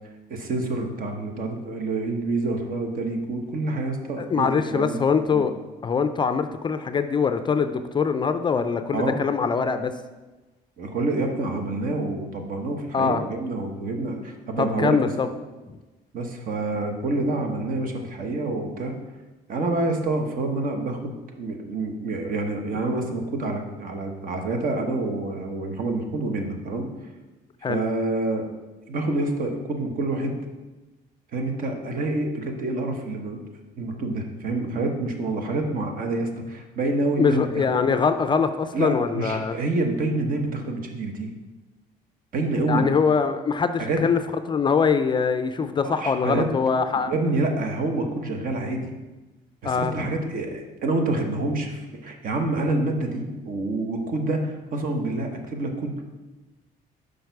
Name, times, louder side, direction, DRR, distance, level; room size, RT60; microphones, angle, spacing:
voice 1, 0.3-5.1 5.3-5.5 8.9-9.2 10.8-15.0 16.1-19.0 19.5-26.9 27.7-28.5 28.9-30.4 31.3-33.4 33.8-37.8 38.7-41.3 42.3-42.9 43.8-44.0 45.8-46.5 47.1-49.0 49.6-56.0, right 2 dB, 55° right, 4 dB, 1.1 m, -27 dB
voice 2, 4.2-5.5 5.8-9.9 12.9-13.2 14.6-15.3 27.6-27.8 37.2-39.6 42.7-44.2 44.5-47.1 49.6-50.1, left 5 dB, 30° left, 9 dB, 0.4 m, -23 dB
6.4 x 5.1 x 4.6 m, 1.1 s
cardioid pair, 110°, 17 cm